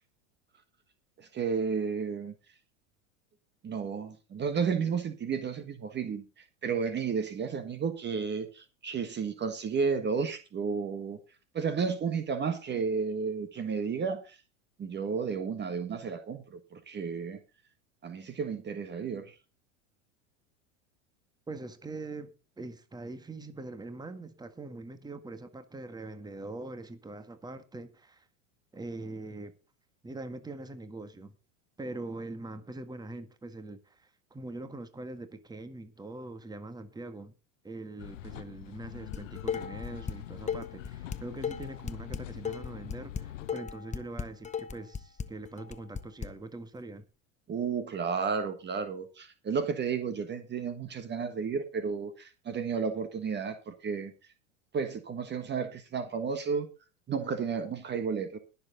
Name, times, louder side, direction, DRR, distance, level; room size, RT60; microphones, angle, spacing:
voice 1, 1.2-2.3 3.6-11.2 11.5-14.4 14.8-17.4 18.0-19.3 47.5-54.1 54.7-56.7 57.1-58.4, right 5 dB, 30° right, 1.5 m, -32 dB
voice 2, 21.5-28.3 28.7-29.5 30.0-31.3 31.8-37.3 37.6-47.0, right 2 dB, 10° right, 1.7 m, -42 dB
sound 1, 38.0-43.5, left 13 dB, 80° left, 0.9 m, -44 dB
Dishes pots and pans, 39.1-40.2 40.5-46.3, left 7 dB, 20° left, 1.0 m, -35 dB
21.0 x 7.1 x 3.9 m
hypercardioid pair, 100°, 37 cm